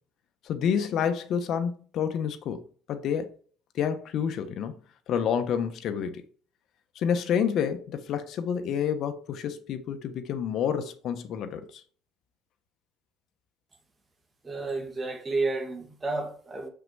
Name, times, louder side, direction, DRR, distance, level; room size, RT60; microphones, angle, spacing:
voice 1, 0.4-2.6 2.9-3.3 3.7-4.8 5.1-6.2 6.9-11.8, left 8 dB, 60° left, 1.1 m, -29 dB
voice 2, 14.4-16.7, right 3 dB, 20° right, 2.4 m, -31 dB
6.7 x 5.9 x 4.7 m
cardioid pair, 120°, 0 cm